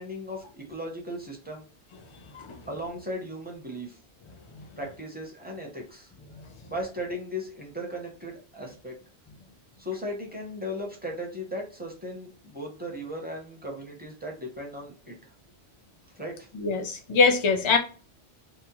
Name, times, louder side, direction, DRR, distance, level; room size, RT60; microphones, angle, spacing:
voice 1, 0.0-1.7 2.7-4.0 4.8-6.1 6.7-8.9 9.8-15.2 16.1-16.5, equal, 10° right, 0.6 m, -37 dB
voice 2, 16.5-17.8, left 4 dB, 40° left, 0.4 m, -23 dB
2.7 x 2.0 x 2.8 m
omnidirectional pair, 1.1 m